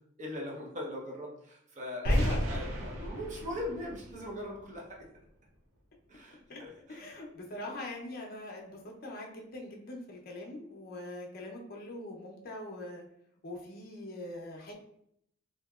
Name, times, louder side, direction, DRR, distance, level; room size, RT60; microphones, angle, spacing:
voice 1, 0.2-2.1 2.5-5.0 6.1-7.0, left 1 dB, 35° right, -2 dB, 0.7 m, -40 dB
voice 2, 2.0-2.4 6.5-6.6 6.9-13.1 13.4-14.7, left 2 dB, 45° left, 0 dB, 0.6 m, -42 dB
sound 1, 2.1-5.0, equal, 85° right, 0.6 m, -33 dB
2.8 x 2.8 x 2.3 m, 0.72 s
head